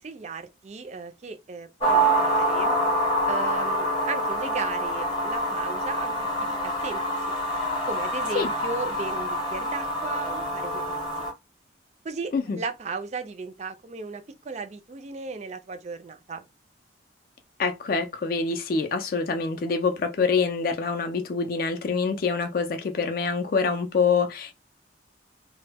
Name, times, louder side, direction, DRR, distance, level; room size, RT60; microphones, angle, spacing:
voice 1, 0.0-2.8 3.3-7.0 7.9-11.0 12.0-16.4, right 4 dB, 35° right, 0.3 m, -36 dB
sound 1, 1.8-11.3, right 1 dB, 25° left, 0.7 m, -26 dB
voice 2, 17.6-24.5, left 5 dB, 50° left, 0.3 m, -25 dB
2.1 x 2.0 x 3.3 m
head